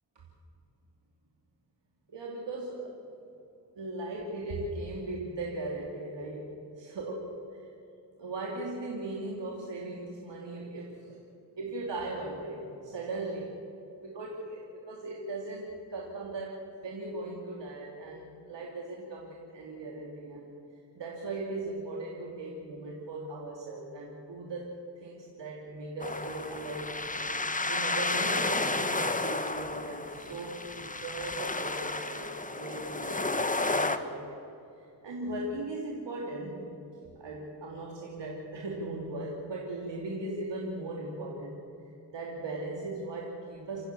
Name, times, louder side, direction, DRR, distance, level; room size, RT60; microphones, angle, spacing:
voice 1, 2.1-3.0 3.7-6.5 6.8-7.2 7.5-7.6 8.2-11.2 11.6-13.6 14.0-20.5 20.9-24.7 25.0-26.9 27.6-34.4 34.8-36.7 37.2-41.6 42.1-43.8, right 2 dB, 80° right, -2 dB, 3.0 m, -38 dB
sound 1, 26.0-34.0, left 2 dB, 20° left, 1.3 m, -32 dB
29.0 x 15.0 x 7.0 m, 2.7 s
wide cardioid pair, 80°, 42 cm